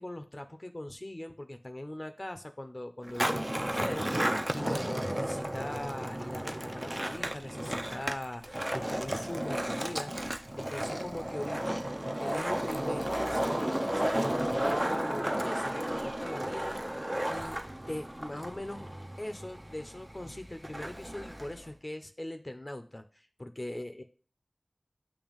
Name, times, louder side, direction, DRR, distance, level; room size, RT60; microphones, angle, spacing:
voice 1, 0.0-11.8 12.2-17.0 17.3-17.6 17.9-18.9 19.2-24.0, left 1 dB, 35° left, 7 dB, 0.7 m, -41 dB
Skateboard, 3.0-21.7, right 1 dB, 20° right, 0.5 m, -33 dB
7.1 x 2.9 x 5.2 m, 0.38 s
wide cardioid pair, 50°, 0 cm